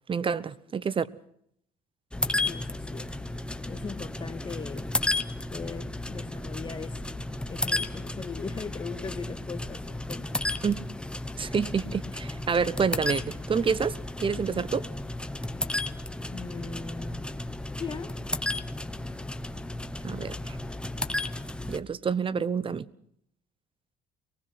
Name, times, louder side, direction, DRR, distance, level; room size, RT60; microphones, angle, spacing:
voice 1, 0.1-1.1 10.6-10.8 11.4-14.9 20.0-20.6 21.7-22.9, right 6 dB, 30° right, 0.9 m, -28 dB
sound 1, 2.1-21.8, left 2 dB, 5° left, 1.0 m, -33 dB
voice 2, 2.5-3.1 3.7-4.9 5.5-10.4 16.3-17.2 17.8-18.1, left 5 dB, 25° left, 2.1 m, -39 dB
24.0 x 19.0 x 5.9 m
cardioid pair, 110°, 17 cm